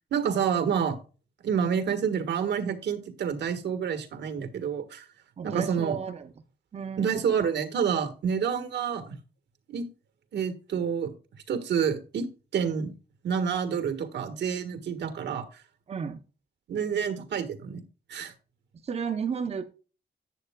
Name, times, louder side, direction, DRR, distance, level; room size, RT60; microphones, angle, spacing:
voice 1, 0.1-1.0 1.4-5.1 5.4-6.0 7.0-9.2 9.7-9.9 10.3-11.1 11.5-12.9 13.2-15.5 16.7-17.8 18.1-18.3, right 7 dB, 85° right, 9 dB, 1.5 m, -28 dB
voice 2, 5.4-6.3 6.7-7.2 15.9-16.2 18.8-19.7, right 6 dB, 35° right, 7 dB, 0.8 m, -33 dB
11.0 x 8.4 x 2.3 m, 0.35 s
wide cardioid pair, 165°, 18 cm